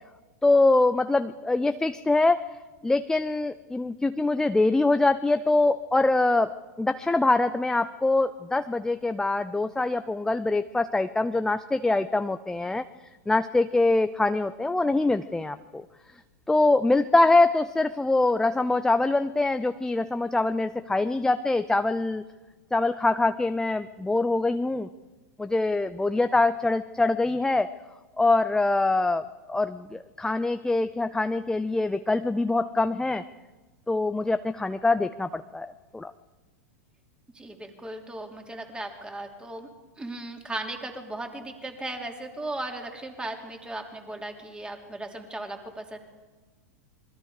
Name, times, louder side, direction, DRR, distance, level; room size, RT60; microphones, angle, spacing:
voice 1, 0.4-2.4 2.8-12.8 13.3-15.8 16.5-22.2 22.7-24.9 25.4-27.7 28.2-33.2 33.9-36.1, left 2 dB, 5° left, 10 dB, 0.6 m, -24 dB
voice 2, 37.3-39.7 40.0-46.0, right 2 dB, 10° right, 3 dB, 3.2 m, -37 dB
27.0 x 21.5 x 5.1 m, 1.2 s
hypercardioid pair, 105°, 9 cm